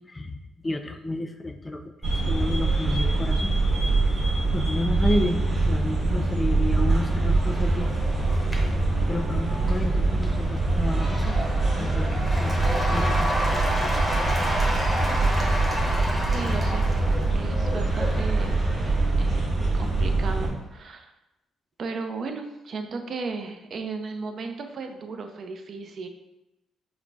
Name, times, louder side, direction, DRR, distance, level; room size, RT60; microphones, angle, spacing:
voice 1, 0.1-0.4 0.6-3.8 4.1-4.2 4.5-7.9 8.5-11.4 11.8-13.3, left 1 dB, 20° left, 6 dB, 0.4 m, -31 dB
sound 1, 2.0-20.5, right 2 dB, 35° right, 1.5 m, -24 dB
Cheering / Applause / Crowd, 6.8-20.2, equal, ahead, 0.9 m, -32 dB
voice 2, 16.3-16.9 17.3-18.5 19.1-19.4 19.7-21.1 21.8-26.1, right 4 dB, 55° right, 5 dB, 0.5 m, -35 dB
4.8 x 2.1 x 3.5 m, 0.93 s
cardioid pair, 90°, 0 cm